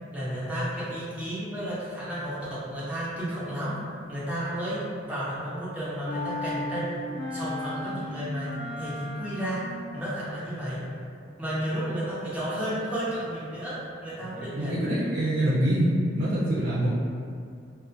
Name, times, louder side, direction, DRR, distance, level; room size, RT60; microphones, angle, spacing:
voice 1, 0.1-3.8 4.1-7.0 7.3-9.6 9.9-10.8 11.4-14.9, equal, 10° right, -10 dB, 0.6 m, -32 dB
sound 1, 6.1-10.0, left 1 dB, 75° left, 0.4 m, -36 dB
voice 2, 14.5-16.9, right 1 dB, 55° right, -8 dB, 0.4 m, -25 dB
2.4 x 2.1 x 2.6 m, 2.3 s
head